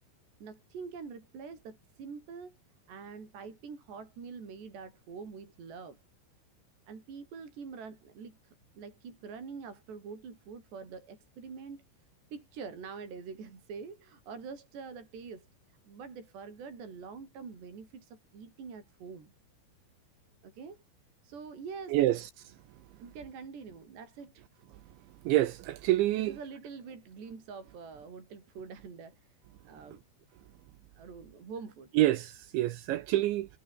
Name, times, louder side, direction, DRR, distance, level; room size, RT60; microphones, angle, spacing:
voice 1, 0.4-2.6 2.9-6.0 6.9-8.4 8.8-11.8 12.3-15.5 15.9-19.3 20.4-20.8 21.2-22.1 23.0-24.4 26.1-29.2 29.7-30.0 31.0-31.9, right 5 dB, 55° right, 7.8 m, -45 dB
voice 2, 25.3-26.3 32.0-33.5, right 15 dB, 75° right, 3.1 m, -27 dB
omnidirectional pair, 5.9 m